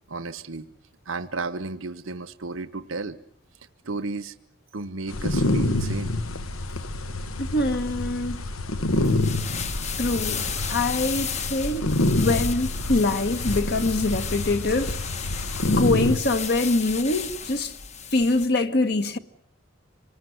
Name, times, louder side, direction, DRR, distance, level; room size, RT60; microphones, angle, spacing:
voice 1, 0.1-0.7 1.1-3.2 3.8-4.3 4.7-6.2, right 3 dB, 75° right, 1.0 m, -33 dB
sound 1, 5.1-16.2, left 2 dB, 90° left, 1.4 m, -27 dB
voice 2, 7.4-8.4 10.0-10.4 10.7-15.0 15.6-17.7 18.1-19.2, left 2 dB, 50° left, 1.4 m, -24 dB
sound 2, 8.9-18.5, left 6 dB, 35° left, 1.0 m, -33 dB
26.0 x 19.0 x 9.6 m
head